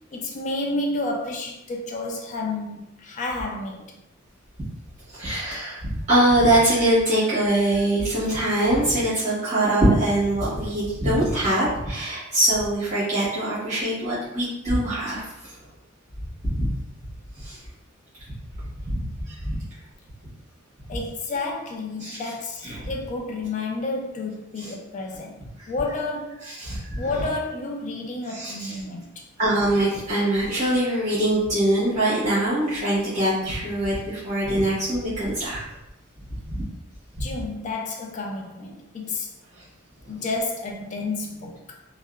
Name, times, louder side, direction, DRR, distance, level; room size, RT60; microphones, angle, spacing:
voice 1, 0.1-4.0 20.9-26.5 27.0-29.2 37.2-39.3 40.1-41.7, left 2 dB, 35° left, 1 dB, 0.3 m, -30 dB
voice 2, 5.1-15.2 16.4-16.7 17.4-17.6 18.9-19.6 22.0-22.2 22.6-22.9 24.6-24.7 25.6-25.7 26.6-27.1 28.3-28.7 29.4-35.7 36.5-36.6 37.1-37.3, right 1 dB, 35° right, -11 dB, 1.1 m, -23 dB
2.7 x 2.1 x 2.3 m, 0.86 s
head